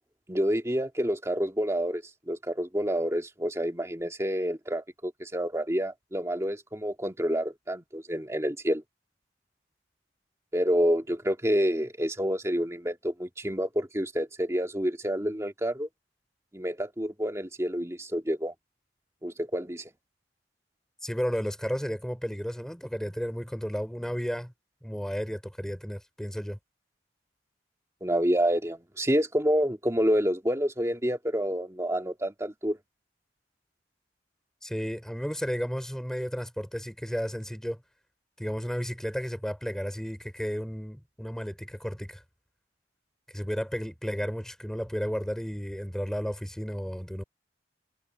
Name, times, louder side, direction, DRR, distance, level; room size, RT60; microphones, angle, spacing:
voice 1, 0.3-8.8 10.5-15.9 16.5-18.5 19.2-19.9 28.0-32.8, equal, 15° right, 2.0 m, -28 dB
voice 2, 21.0-24.5 24.8-26.6 34.6-37.8 38.4-42.2 43.3-47.2, equal, 5° left, 4.5 m, -33 dB
head